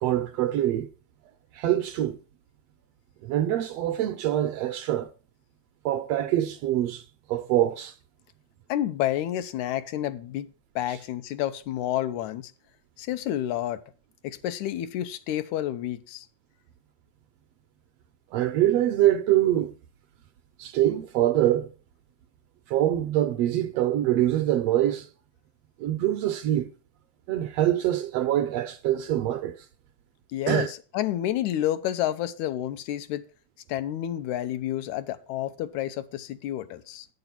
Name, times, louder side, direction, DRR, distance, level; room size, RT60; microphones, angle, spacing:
voice 1, 0.0-0.9 1.5-2.2 3.2-5.1 5.8-7.0 7.3-7.9 18.3-19.7 20.6-21.7 22.7-25.1 25.8-26.7 27.3-29.6 30.5-30.7, right 12 dB, 75° right, 1.5 m, -24 dB
voice 2, 8.7-12.5 13.0-13.8 14.2-16.3 30.3-33.3 33.7-37.1, left 12 dB, 85° left, 2.1 m, -30 dB
8.9 x 6.8 x 5.7 m
omnidirectional pair, 3.3 m